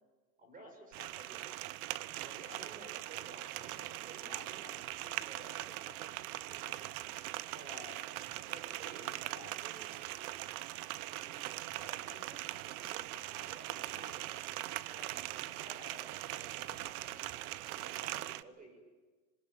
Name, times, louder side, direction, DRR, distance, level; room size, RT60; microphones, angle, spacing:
voice 1, 0.4-1.4 2.1-6.9 7.5-8.0 8.3-10.4 10.9-11.5 11.8-14.3 14.9-17.3 17.8-18.8, equal, 15° right, 5 dB, 5.8 m, -54 dB
sound 1, 0.9-18.4, right 17 dB, 65° right, 0.9 m, -41 dB
sound 2, 3.1-4.1 4.4-8.5 9.1-9.2 9.9-11.4 11.7-18.4, right 2 dB, 40° right, 5.9 m, -66 dB
sound 3, 12.9-18.0, left 10 dB, 25° left, 4.3 m, -70 dB
26.0 x 22.0 x 9.2 m, 1.3 s
supercardioid pair, 165°, 46 cm